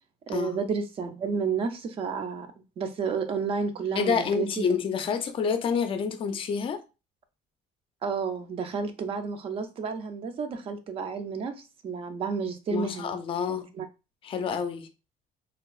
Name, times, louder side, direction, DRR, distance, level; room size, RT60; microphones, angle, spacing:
voice 1, 0.3-2.5 2.8-4.6 8.0-13.1 13.5-13.8, right 5 dB, 40° right, 0.5 m, -31 dB
voice 2, 4.0-6.8 12.7-13.7 14.2-14.9, left 6 dB, 40° left, 0.4 m, -28 dB
3.3 x 2.7 x 2.3 m
cardioid pair, 165°, 14 cm